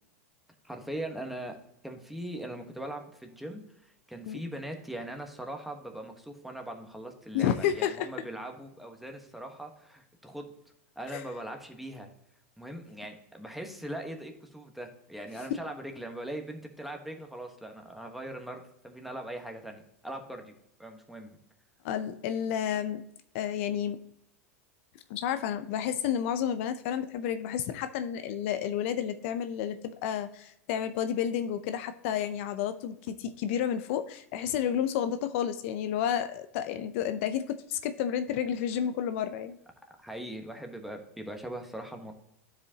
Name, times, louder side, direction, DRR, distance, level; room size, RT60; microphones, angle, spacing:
voice 1, 0.6-1.6 1.8-10.5 11.0-12.1 12.6-20.5 20.8-21.4 40.0-42.1, right 1 dB, ahead, 4 dB, 1.2 m, -40 dB
voice 2, 7.3-8.1 11.1-11.2 21.8-23.1 23.3-24.0 25.1-39.6, left 9 dB, 60° left, 10 dB, 0.5 m, -31 dB
12.0 x 5.0 x 2.8 m, 0.78 s
hypercardioid pair, 105°, 8 cm